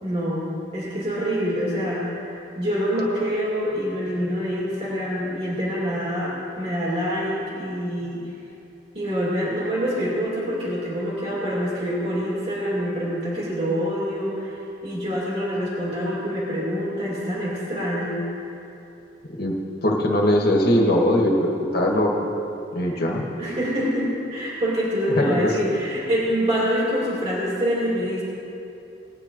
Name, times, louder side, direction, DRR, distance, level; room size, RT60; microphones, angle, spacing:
voice 1, 0.0-8.2 8.9-18.2 22.9-23.1 23.4-28.2, equal, 30° right, -7 dB, 2.4 m, -26 dB
voice 2, 19.8-22.3 22.7-23.2 25.1-25.5, left 1 dB, 55° left, 0 dB, 1.6 m, -20 dB
19.0 x 9.9 x 3.1 m, 2.9 s
head